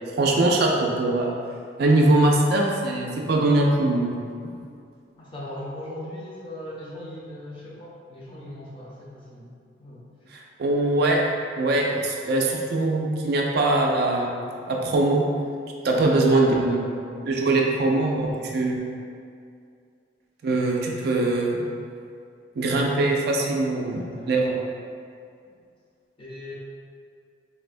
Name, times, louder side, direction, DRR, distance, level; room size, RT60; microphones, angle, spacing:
voice 1, 0.2-1.4 1.8-4.2 10.6-11.2 11.6-14.4 14.7-15.3 15.8-16.8 17.2-18.8 20.4-21.7 22.6-24.6, right 2 dB, 60° right, 0 dB, 0.4 m, -22 dB
voice 2, 5.2-9.5 9.8-10.0 15.9-17.7 18.3-18.7 23.9-24.4 26.2-26.5, left 1 dB, 30° left, -6 dB, 0.6 m, -39 dB
4.1 x 2.1 x 2.4 m, 2.3 s
head